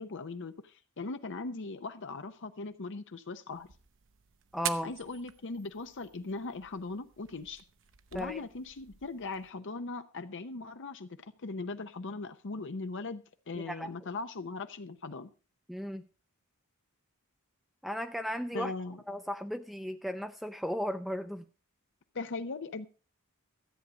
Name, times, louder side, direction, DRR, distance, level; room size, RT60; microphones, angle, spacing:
voice 1, 0.0-3.7 4.8-7.6 8.1-15.3 18.5-19.0 22.1-22.9, left 3 dB, 55° left, 9 dB, 0.7 m, -39 dB
sound 1, 3.5-9.5, right 11 dB, 60° right, 0.8 m, -45 dB
voice 2, 4.5-4.9 8.1-8.4 13.6-13.9 15.7-16.0 17.8-18.7 19.1-21.4, equal, ahead, 7 dB, 0.5 m, -35 dB
13.5 x 8.3 x 5.1 m, 0.36 s
head